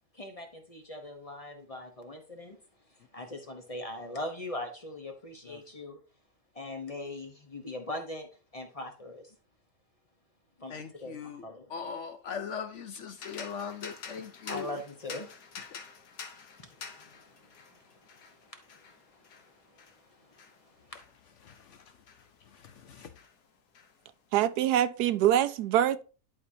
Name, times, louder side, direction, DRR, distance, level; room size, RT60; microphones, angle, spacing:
voice 1, 0.1-2.6 2.9-6.0 6.5-9.4 10.6-11.7 14.1-15.4 16.6-21.0, left 1 dB, 30° left, 0.8 m, -42 dB
voice 2, 10.7-11.4 11.7-14.7 22.9-23.1, left 6 dB, 60° left, 0.8 m, -39 dB
sound 1, 13.2-22.8 23.1-24.4, left 6 dB, 90° left, 1.6 m, -49 dB
voice 3, 24.3-26.0, right 11 dB, 85° right, 1.1 m, -24 dB
11.0 x 4.7 x 2.7 m
omnidirectional pair, 1.6 m